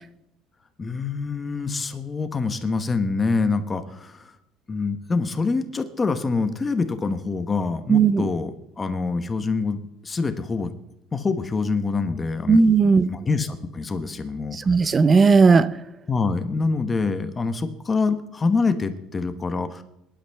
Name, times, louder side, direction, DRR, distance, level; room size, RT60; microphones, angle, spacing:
voice 1, 0.8-4.3 4.7-9.8 10.0-10.7 11.1-12.6 13.1-14.6 16.1-19.8, left 4 dB, 20° left, 1.0 m, -25 dB
voice 2, 7.9-8.3 12.5-13.1 14.7-15.7, right 4 dB, 20° right, 0.6 m, -16 dB
22.5 x 11.5 x 3.5 m
cardioid pair, 155°, 0 cm